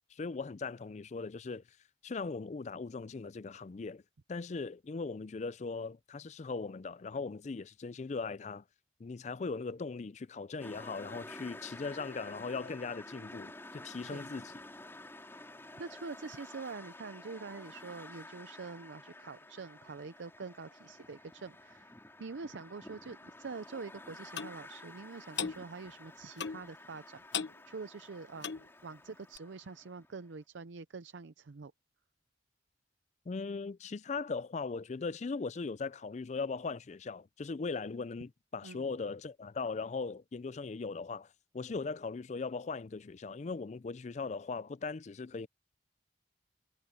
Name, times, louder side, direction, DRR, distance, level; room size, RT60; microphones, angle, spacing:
voice 1, 0.1-1.6 2.0-4.0 4.3-8.6 9.0-14.5 33.3-45.5, left 4 dB, 40° left, 0.4 m, -39 dB
sound 1, 10.6-30.2, left 1 dB, 15° left, 4.3 m, -51 dB
voice 2, 15.8-27.2 27.7-31.7 38.6-38.9, right 4 dB, 85° right, 0.6 m, -45 dB
Clock, 24.4-24.5 25.4-25.6 26.4-26.7 27.3-27.6 28.4-28.7 29.4-29.5, left 7 dB, 75° left, 1.1 m, -36 dB
head